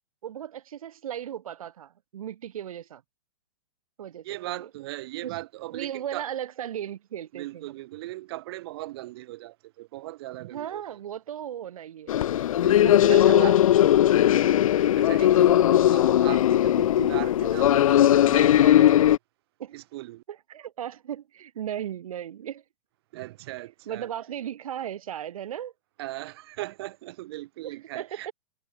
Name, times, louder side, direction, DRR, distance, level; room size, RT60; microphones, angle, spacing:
voice 1, 0.2-3.0 4.0-4.7 5.2-5.4 5.7-7.7 10.5-12.3 12.8-13.6 15.3-15.7 19.6-19.7 20.3-22.6 23.9-25.7 27.6-28.3, right 10 dB, 75° right, 1.2 m, -36 dB
voice 2, 4.2-6.3 7.3-11.0 12.5-13.5 14.4-19.2 19.7-20.2 23.1-24.1 26.0-28.3, right 17 dB, 45° right, 1.2 m, -39 dB
sound 1, 12.1-19.2, left 12 dB, 70° left, 0.6 m, -19 dB
hypercardioid pair, 155°, 18 cm